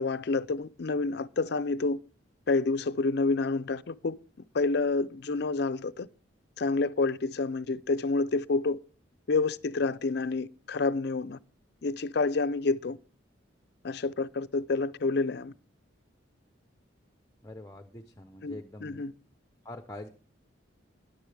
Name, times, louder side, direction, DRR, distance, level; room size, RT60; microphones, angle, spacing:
voice 1, 0.0-2.0 2.5-4.1 4.5-6.1 6.6-8.8 9.3-11.4 11.8-13.0 13.8-15.5 18.4-19.1, left 3 dB, 55° left, 0.5 m, -28 dB
voice 2, 17.4-19.1 19.6-20.1, left 1 dB, 15° left, 0.7 m, -44 dB
13.0 x 10.0 x 3.4 m
head